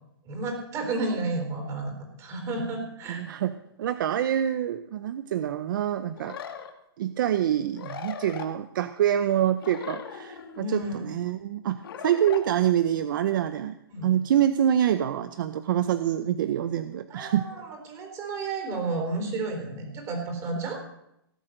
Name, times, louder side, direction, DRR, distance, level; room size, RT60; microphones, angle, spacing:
voice 1, 0.2-3.2 10.5-11.0 13.9-14.1 17.1-20.8, right 2 dB, 20° right, 4 dB, 4.1 m, -32 dB
voice 2, 3.1-6.4 7.0-13.8 14.0-17.4, right 10 dB, 55° right, 12 dB, 0.8 m, -26 dB
sound 1, 6.2-6.7 7.7-8.5 9.6-10.6 11.8-12.4, left 8 dB, 65° left, 2.1 m, -38 dB
18.0 x 8.0 x 7.8 m, 0.81 s
hypercardioid pair, 165°, 13 cm